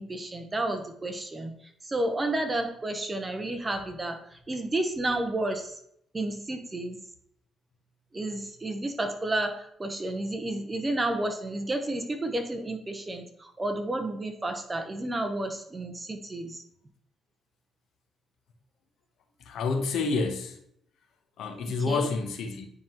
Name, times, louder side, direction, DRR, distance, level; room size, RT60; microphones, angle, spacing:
voice 1, 0.0-1.5 1.8-5.7 6.1-7.0 8.1-16.6 21.9-22.1, right 2 dB, 25° right, 6 dB, 0.9 m, -31 dB
voice 2, 19.5-20.5 21.4-22.7, left 4 dB, 75° left, 5 dB, 0.9 m, -28 dB
9.3 x 3.6 x 3.0 m, 0.70 s
cardioid pair, 90°, 0 cm